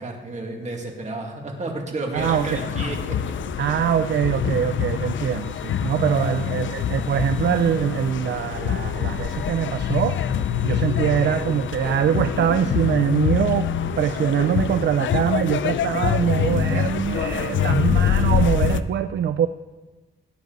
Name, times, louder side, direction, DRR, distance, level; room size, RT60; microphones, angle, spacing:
voice 1, 0.0-3.3 6.0-6.5, right 2 dB, 35° right, 1 dB, 2.3 m, -32 dB
voice 2, 2.1-2.7 3.6-10.2 10.6-13.7 14.0-19.5, right 9 dB, 60° right, 11 dB, 0.5 m, -23 dB
sound 1, 2.2-18.8, left 9 dB, 75° left, 0.6 m, -25 dB
sound 2, 5.4-12.5, left 3 dB, 10° left, 1.3 m, -47 dB
18.0 x 9.2 x 4.0 m, 1.2 s
wide cardioid pair, 130°, 20 cm